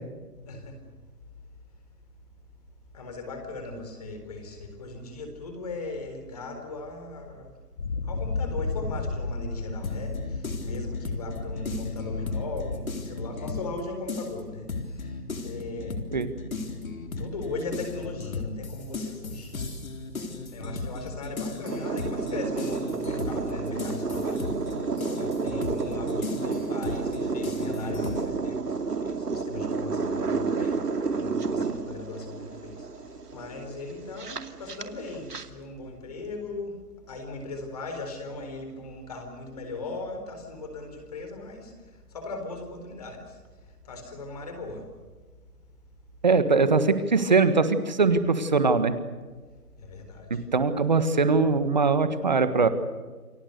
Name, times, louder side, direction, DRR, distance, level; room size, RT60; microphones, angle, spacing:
voice 1, 0.5-0.8 2.9-7.5 8.0-15.1 15.4-16.0 17.2-19.6 20.5-24.4 25.1-30.7 31.1-32.9 33.3-36.8 37.1-41.7 42.1-43.3 43.8-44.8 49.8-50.4, left 2 dB, 25° left, 5 dB, 4.2 m, -38 dB
sound 1, 7.8-12.8, left 3 dB, 45° left, 2.8 m, -33 dB
sound 2, 9.8-13.8 14.1-28.3, left 3 dB, 60° left, 3.9 m, -36 dB
sound 3, 21.6-35.5, right 4 dB, 90° right, 2.6 m, -31 dB
voice 2, 46.2-48.9 50.3-52.7, right 4 dB, 30° right, 11 dB, 1.5 m, -22 dB
29.0 x 23.0 x 6.7 m, 1.4 s
hypercardioid pair, 175°, 46 cm